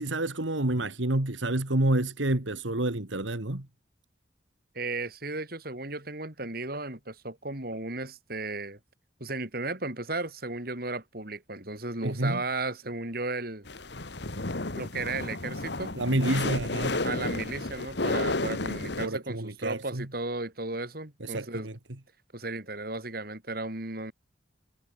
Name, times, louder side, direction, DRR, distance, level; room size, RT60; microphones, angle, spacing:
voice 1, 0.0-3.7 12.0-12.4 15.9-17.0 19.0-20.1 21.2-21.7, right 1 dB, 80° right, 2.3 m, -28 dB
voice 2, 4.7-8.8 9.2-13.7 14.8-16.0 16.9-21.7 22.3-24.1, right 2 dB, 50° right, 4.0 m, -35 dB
sound 1, 13.7-19.1, left 2 dB, 60° left, 1.7 m, -32 dB
head